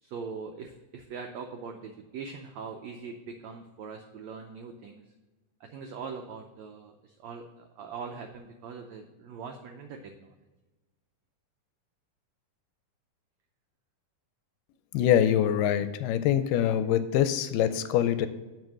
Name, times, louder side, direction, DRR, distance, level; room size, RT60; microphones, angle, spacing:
voice 1, 0.0-5.0 5.6-10.4, right 5 dB, 85° right, 4 dB, 1.5 m, -42 dB
voice 2, 14.9-18.3, left 10 dB, 80° left, 11 dB, 2.1 m, -24 dB
7.6 x 5.3 x 6.2 m, 1.2 s
omnidirectional pair, 3.9 m